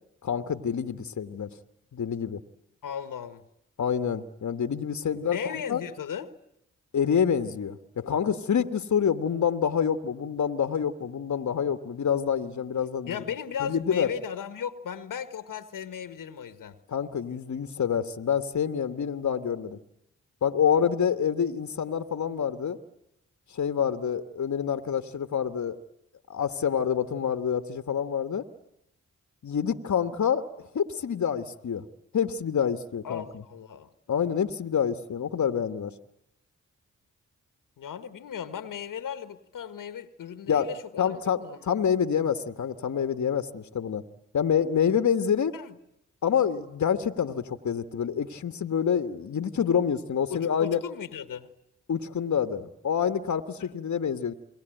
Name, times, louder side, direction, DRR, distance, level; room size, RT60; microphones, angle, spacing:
voice 1, 0.2-1.5 1.9-2.4 3.8-5.4 5.7-5.8 6.9-13.2 13.6-14.1 16.9-19.8 20.4-22.8 23.5-25.8 26.3-28.4 29.4-31.8 32.1-33.4 34.1-35.9 40.5-40.7 41.0-44.0 44.3-45.5 46.2-50.8 51.9-54.3, left 7 dB, 65° left, 9 dB, 1.5 m, -27 dB
voice 2, 2.8-3.4 5.2-6.3 13.1-16.8 33.0-33.9 37.8-41.6 45.5-45.8 50.3-51.5, left 8 dB, 85° left, 11 dB, 1.5 m, -36 dB
29.0 x 22.0 x 9.1 m, 0.81 s
cardioid pair, 50°, 32 cm